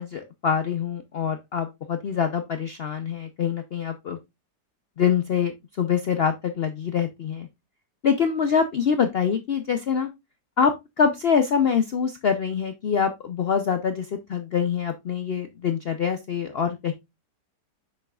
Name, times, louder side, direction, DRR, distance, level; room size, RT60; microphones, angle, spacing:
voice 1, 0.0-4.2 5.0-7.5 8.0-10.1 10.6-16.9, left 7 dB, 85° left, 7 dB, 0.5 m, -25 dB
7.8 x 6.4 x 2.3 m, 0.21 s
omnidirectional pair, 1.9 m